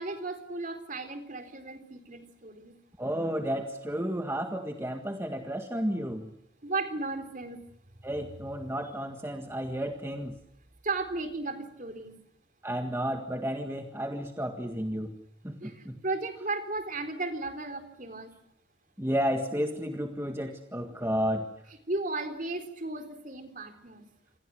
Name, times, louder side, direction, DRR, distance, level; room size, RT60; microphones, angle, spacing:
voice 1, 0.0-2.7 6.6-7.6 10.8-12.2 15.6-18.3 21.9-24.1, right 3 dB, 40° right, 7 dB, 3.6 m, -35 dB
voice 2, 3.0-6.3 8.0-10.4 12.6-15.2 15.4-16.0 19.0-21.5, equal, 10° right, 5 dB, 1.7 m, -32 dB
27.5 x 27.0 x 6.3 m, 0.75 s
head